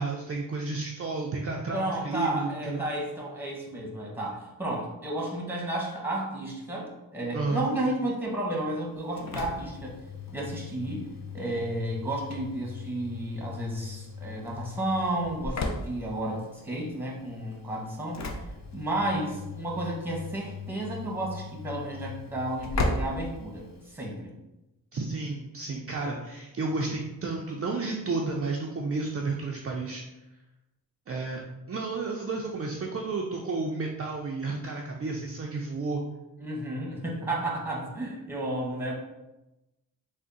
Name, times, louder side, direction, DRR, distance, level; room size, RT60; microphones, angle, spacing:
voice 1, 0.0-2.9 7.3-7.6 24.9-30.0 31.1-31.4 31.7-36.0, right 3 dB, 40° right, -1 dB, 0.4 m, -32 dB
voice 2, 1.7-10.0 10.3-11.1 11.3-18.2 18.7-24.3 36.4-38.9, right 1 dB, 5° right, -3 dB, 1.0 m, -32 dB
Engine / Slam, 8.9-24.1, left 3 dB, 50° left, 0.5 m, -37 dB
3.5 x 2.1 x 3.9 m, 0.99 s
cardioid pair, 75°, 37 cm